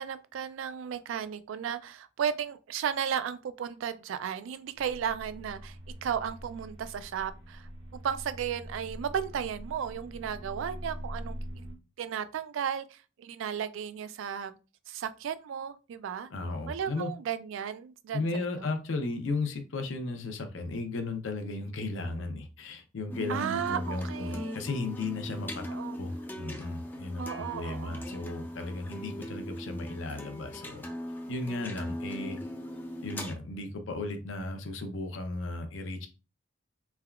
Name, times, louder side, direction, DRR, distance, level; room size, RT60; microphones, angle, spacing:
voice 1, 0.0-5.8 6.0-7.7 8.0-11.4 12.0-14.6 14.9-16.3 16.7-18.2 23.3-24.6 25.7-26.0 27.2-28.1, right 8 dB, 80° right, 0.3 m, -34 dB
sound 1, 4.8-11.7, equal, 25° right, 0.6 m, -43 dB
voice 2, 16.3-17.1 18.1-25.7 26.0-30.8 31.3-32.4 33.0-36.1, left 2 dB, 80° left, 0.6 m, -35 dB
sound 2, 23.1-33.3, left 1 dB, 10° left, 0.3 m, -40 dB
3.3 x 2.3 x 2.3 m
head